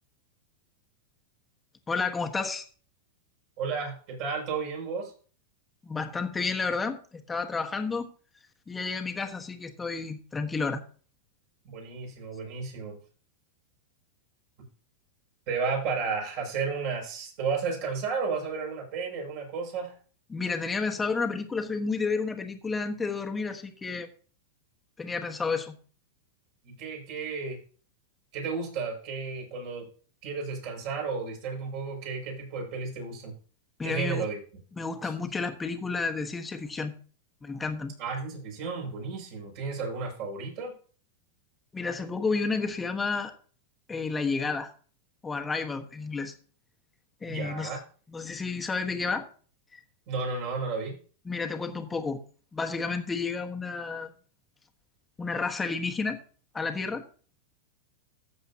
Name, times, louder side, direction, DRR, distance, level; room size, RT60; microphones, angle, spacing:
voice 1, 1.9-2.7 5.8-8.1 8.7-10.8 20.3-24.1 25.0-25.8 33.8-34.3 34.7-36.9 37.4-37.9 41.7-43.3 43.9-44.7 45.2-46.3 47.2-47.7 48.1-49.3 49.7-49.8 51.2-52.2 52.5-54.1 55.2-56.2 56.5-57.0, left 4 dB, 15° left, 5 dB, 1.4 m, -31 dB
voice 2, 3.6-5.1 11.6-13.0 15.5-20.0 26.6-27.6 28.3-29.9 30.2-33.3 33.8-34.4 35.0-35.1 38.0-40.7 47.3-47.8 50.1-51.0, right 5 dB, 55° right, -1 dB, 6.3 m, -33 dB
14.5 x 7.7 x 2.9 m, 0.40 s
hypercardioid pair, 115°, 0 cm